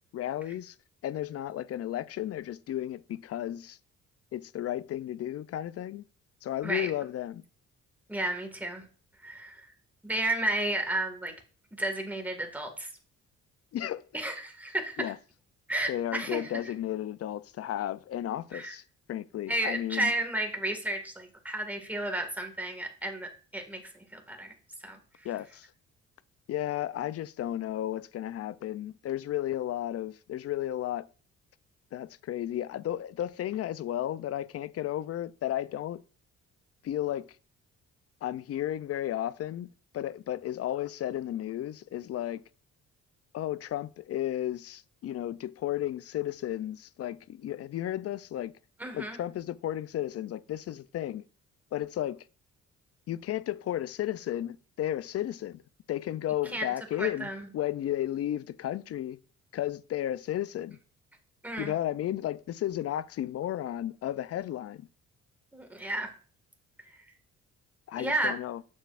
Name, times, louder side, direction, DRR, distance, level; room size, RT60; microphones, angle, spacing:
voice 1, 0.1-0.7 1.0-3.8 4.3-6.0 6.4-7.4 13.7-14.0 15.0-15.2 15.9-18.8 19.1-20.1 25.2-25.7 26.5-31.1 31.9-36.0 36.8-37.3 38.2-39.7 39.9-42.4 43.3-48.5 48.9-51.2 51.7-52.2 53.1-55.6 55.9-57.3 57.5-59.2 59.5-60.8 61.6-64.9 67.9-68.6, left 12 dB, 55° left, 0.4 m, -33 dB
voice 2, 8.1-8.8 9.2-9.7 10.0-11.3 11.8-12.9 14.1-15.1 15.7-16.5 18.5-18.7 19.5-24.5 24.8-25.3 48.8-49.2 56.5-56.7 57.0-57.5 61.4-61.7 65.5-66.1 67.9-68.3, right 1 dB, 5° right, 1.8 m, -32 dB
7.8 x 6.7 x 2.5 m
cardioid pair, 90°, 30 cm